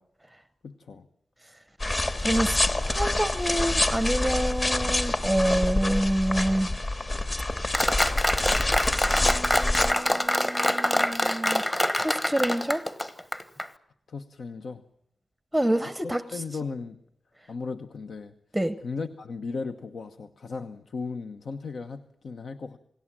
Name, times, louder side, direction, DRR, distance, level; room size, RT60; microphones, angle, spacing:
voice 1, 0.6-1.1 14.1-14.8 16.0-17.0 17.5-18.3 18.8-22.8, left 4 dB, 65° left, 7 dB, 1.0 m, -36 dB
sound 1, 1.8-9.9, left 2 dB, 35° left, 2.0 m, -27 dB
voice 2, 2.2-2.6 2.9-6.7 9.1-12.8 15.5-16.2 18.5-18.8, right 1 dB, 5° right, 11 dB, 0.8 m, -27 dB
Applause, 7.7-13.7, left 1 dB, 15° left, 1.3 m, -25 dB
28.5 x 19.0 x 7.6 m, 0.75 s
wide cardioid pair, 125°, 0 cm